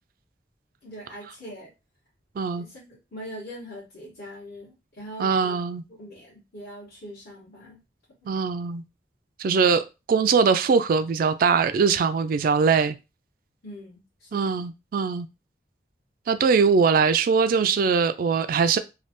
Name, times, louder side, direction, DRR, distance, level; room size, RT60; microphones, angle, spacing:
voice 1, 0.8-1.7 2.6-5.6 6.0-7.8 8.2-8.3 13.6-14.6, equal, 60° left, 1.4 m, -42 dB
voice 2, 5.2-5.8 8.3-8.8 9.4-13.0 14.3-15.3 16.3-18.8, right 5 dB, 55° right, 0.3 m, -21 dB
3.1 x 2.3 x 2.9 m
head